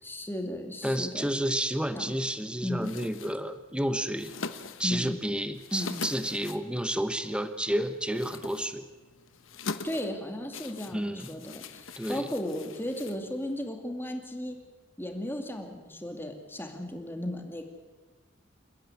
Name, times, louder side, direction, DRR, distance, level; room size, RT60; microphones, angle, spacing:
voice 1, 0.0-1.3 1.9-2.2 2.6-2.9 4.8-5.2 5.7-6.0 9.8-14.6 15.0-17.7, left 1 dB, 10° left, 4 dB, 2.4 m, -35 dB
voice 2, 0.8-4.3 4.8-8.8 10.9-11.3 12.0-12.3, right 1 dB, 5° right, 10 dB, 1.0 m, -30 dB
sound 1, 2.8-13.7, left 4 dB, 80° left, 1.2 m, -43 dB
29.0 x 10.5 x 9.8 m, 1.3 s
head